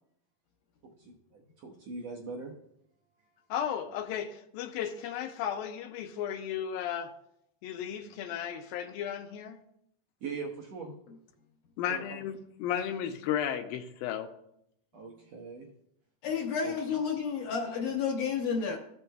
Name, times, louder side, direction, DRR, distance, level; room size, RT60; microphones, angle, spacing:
voice 1, 1.0-2.5 10.2-10.9 11.9-12.0 14.9-15.7 16.6-16.7, right 4 dB, 75° right, -1 dB, 1.5 m, -41 dB
voice 2, 3.5-7.1 7.6-9.6 11.8-14.3, left 9 dB, 85° left, 5 dB, 2.4 m, -34 dB
voice 3, 16.2-18.8, left 6 dB, 70° left, -1 dB, 2.2 m, -31 dB
14.5 x 6.2 x 2.2 m, 0.74 s
omnidirectional pair, 4.1 m